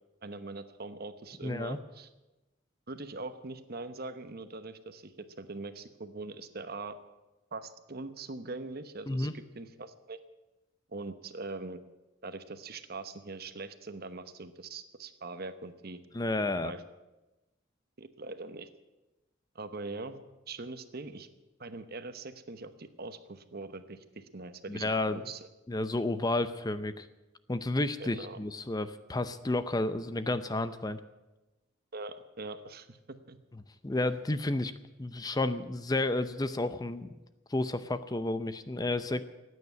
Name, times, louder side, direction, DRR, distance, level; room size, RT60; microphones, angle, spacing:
voice 1, 0.2-2.1 2.9-5.1 5.4-7.0 7.5-10.2 10.9-11.8 12.2-16.0 16.6-16.8 18.0-18.7 19.5-20.2 20.5-21.3 21.6-25.5 28.0-28.4 31.9-33.4, right 3 dB, 50° right, 10 dB, 1.0 m, -42 dB
voice 2, 1.4-1.8 9.1-9.3 16.1-16.7 24.7-25.2 25.7-27.1 27.5-31.0 33.8-34.7 35.0-37.1 37.5-39.2, left 2 dB, 20° left, 12 dB, 0.6 m, -31 dB
15.0 x 9.5 x 9.5 m, 1.1 s
head